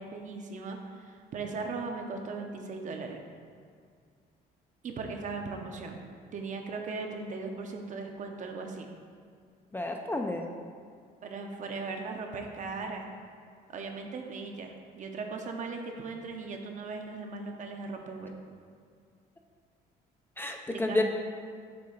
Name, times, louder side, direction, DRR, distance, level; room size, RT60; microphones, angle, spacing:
voice 1, 0.0-3.2 4.8-6.0 6.3-8.9 11.2-13.1 13.7-18.3 20.7-21.0, right 4 dB, 50° right, 3 dB, 0.8 m, -38 dB
voice 2, 9.7-10.5 20.4-21.0, left 2 dB, 15° left, 3 dB, 0.4 m, -30 dB
7.6 x 2.8 x 5.5 m, 2.2 s
cardioid pair, 110°, 17 cm